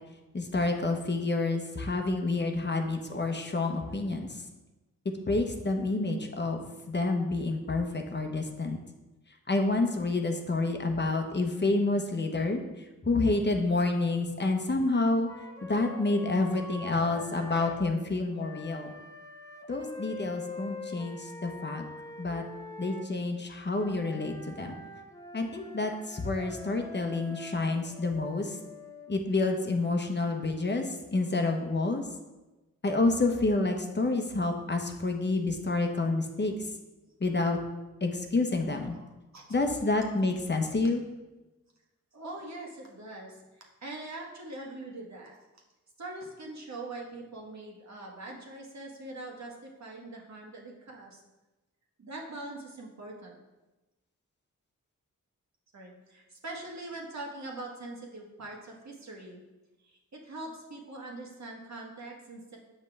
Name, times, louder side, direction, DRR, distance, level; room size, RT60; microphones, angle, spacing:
voice 1, 0.3-4.4 5.3-8.8 9.5-12.6 13.0-15.3 15.6-18.9 19.7-21.9 22.2-22.4 22.8-24.7 25.3-28.6 29.1-32.0 32.8-36.5 37.2-37.6 38.0-38.9 39.5-41.0, left 2 dB, 35° left, 4 dB, 1.1 m, -28 dB
Wind instrument woodwind instrument, 15.3-17.8 18.4-23.1 23.7-29.1, left 3 dB, 10° left, 1.0 m, -45 dB
voice 2, 42.1-45.4 46.0-51.2 52.0-53.3 55.7-59.4 60.1-62.6, right 2 dB, 55° right, -1 dB, 1.6 m, -42 dB
7.3 x 5.4 x 3.5 m, 1.1 s
cardioid pair, 45°, 32 cm